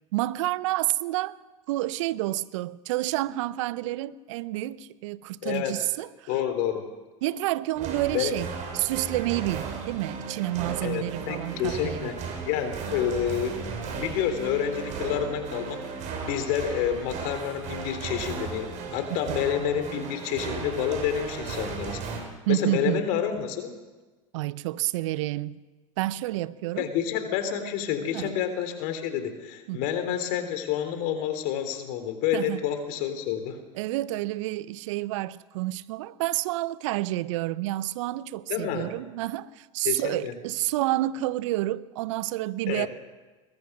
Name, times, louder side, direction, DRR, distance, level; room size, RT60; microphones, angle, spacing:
voice 1, 0.1-1.4 1.7-6.3 7.2-8.5 8.7-12.1 19.3-19.5 22.5-23.0 24.3-25.6 26.0-26.9 28.1-28.3 29.7-29.8 32.3-32.6 33.7-42.9, right 16 dB, 65° right, 0.8 m, -29 dB
voice 2, 5.4-5.7 6.3-6.8 8.1-8.3 10.8-13.6 13.9-15.8 16.2-22.0 22.5-23.7 26.8-33.6 38.5-38.9 39.9-40.3 42.7-42.9, left 9 dB, 55° left, 3.5 m, -29 dB
sound 1, 7.7-22.2, right 5 dB, 45° right, 5.8 m, -36 dB
22.5 x 20.5 x 6.1 m
hypercardioid pair, 80°, 17 cm